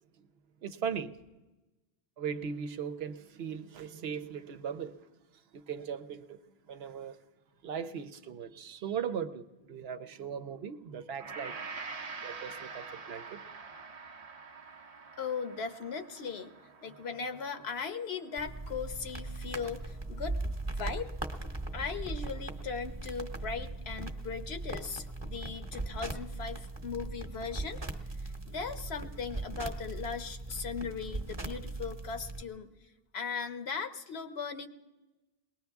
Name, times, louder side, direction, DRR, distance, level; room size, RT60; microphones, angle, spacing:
voice 1, 0.6-1.1 2.2-5.0 5.5-6.4 6.7-7.2 7.6-11.5 12.2-13.4, right 7 dB, 80° right, 1.0 m, -38 dB
Gong, 11.2-19.6 20.0-20.1, right 4 dB, 45° right, 0.6 m, -46 dB
voice 2, 15.2-16.5 16.8-21.1 21.7-27.8 28.2-32.7 33.1-34.7, left 5 dB, 80° left, 1.2 m, -38 dB
sound 1, 18.4-32.4, right 2 dB, 25° right, 1.0 m, -39 dB
22.0 x 19.0 x 3.5 m
omnidirectional pair, 1.0 m